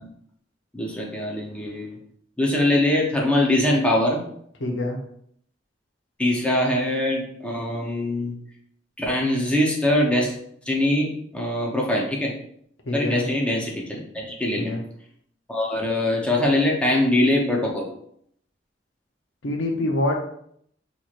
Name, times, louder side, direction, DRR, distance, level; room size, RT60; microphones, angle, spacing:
voice 1, 0.7-2.0 2.4-4.2 6.2-8.3 9.0-10.3 10.7-12.3 12.9-14.7 15.5-17.9, left 1 dB, 5° left, -2 dB, 0.7 m, -22 dB
voice 2, 4.6-5.0 12.9-13.2 14.6-14.8 19.4-20.2, left 1 dB, 80° left, 1 dB, 0.7 m, -25 dB
4.4 x 3.0 x 2.5 m, 0.68 s
head